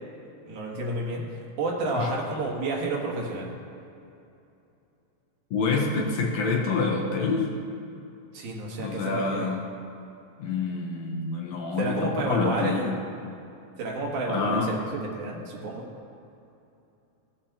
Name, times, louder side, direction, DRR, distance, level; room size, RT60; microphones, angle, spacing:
voice 1, 0.5-1.2 1.6-3.5 8.3-9.5 11.8-12.9 13.8-14.9 15.1-15.8, right 2 dB, 85° right, -2 dB, 2.9 m, -30 dB
voice 2, 5.5-7.5 8.8-9.7 10.4-13.0 14.3-14.8, left 4 dB, 70° left, -2 dB, 2.1 m, -27 dB
17.0 x 7.1 x 2.9 m, 2.7 s
omnidirectional pair, 3.4 m